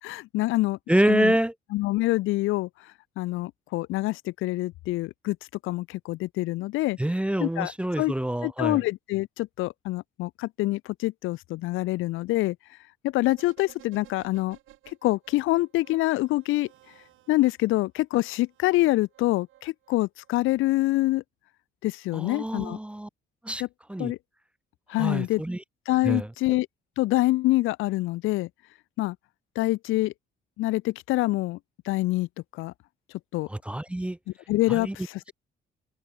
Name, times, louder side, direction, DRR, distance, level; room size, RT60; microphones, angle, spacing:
voice 1, 0.0-0.8 1.1-1.3 1.7-2.7 3.2-5.4 5.6-7.0 7.4-7.7 8.0-8.1 8.4-12.6 13.0-14.6 15.0-16.7 17.3-21.2 21.8-22.8 23.6-23.7 24.0-24.2 24.9-25.4 25.9-26.7 27.0-28.5 29.0-29.2 29.6-30.1 30.6-31.6 31.9-32.3 32.5-32.7 33.3-33.5 34.5-35.2, left 18 dB, 90° left, 0.5 m, -26 dB
voice 2, 0.9-1.5 7.0-8.8 22.1-23.1 23.4-23.6 23.9-24.1 25.0-25.6 26.0-26.6 33.5-34.2 34.7-35.0, right 1 dB, 5° right, 0.4 m, -26 dB
sound 1, 13.2-17.7 18.5-20.3 20.6-20.7, right 14 dB, 85° right, 4.7 m, -55 dB
cardioid pair, 90°, 20 cm